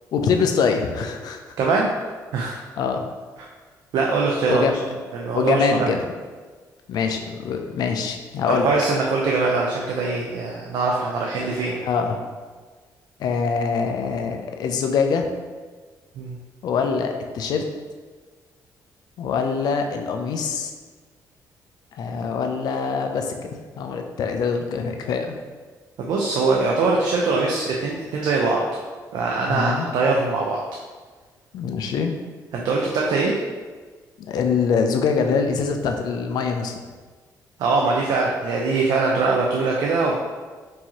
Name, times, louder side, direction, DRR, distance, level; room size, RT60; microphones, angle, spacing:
voice 1, 0.1-1.4 2.8-3.1 4.5-4.8 5.3-6.1 6.9-8.7 11.7-12.2 13.2-15.3 16.6-17.6 19.2-20.7 21.9-23.5 23.8-25.4 29.5-29.9 31.5-32.1 34.3-36.7, left 5 dB, 70° left, 5 dB, 0.5 m, -24 dB
voice 2, 1.6-1.9 2.3-2.6 3.9-4.7 5.1-5.9 8.5-11.7 16.2-16.4 26.0-28.8 29.1-30.6 32.5-33.3 37.6-40.1, right 3 dB, 75° right, -2 dB, 0.5 m, -22 dB
4.6 x 2.7 x 2.9 m, 1.4 s
cardioid pair, 90°, 7 cm